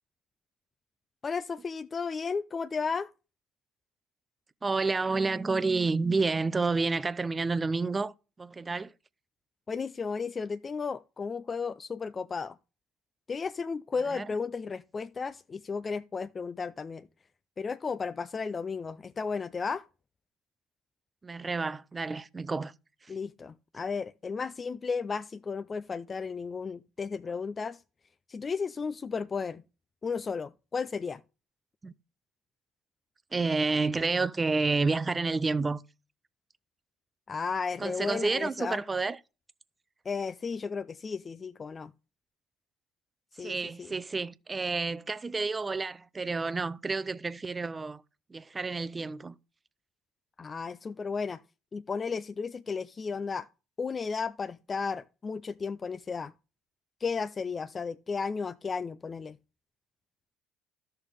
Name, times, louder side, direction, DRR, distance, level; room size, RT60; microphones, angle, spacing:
voice 1, 1.2-3.1 9.7-12.6 13.3-17.1 17.6-19.8 23.1-27.8 28.3-29.6 30.0-31.2 37.3-38.8 40.1-41.9 43.4-43.9 50.4-51.4 51.7-53.5 53.8-56.3 57.0-59.4, left 5 dB, 35° left, 0.4 m, -34 dB
voice 2, 4.6-8.1 8.4-8.9 14.1-14.3 21.2-22.7 31.8-31.9 33.3-35.8 37.8-39.2 43.4-48.0 48.3-49.4, right 3 dB, 25° right, 0.6 m, -29 dB
13.0 x 6.7 x 3.4 m
hypercardioid pair, 55°, 0 cm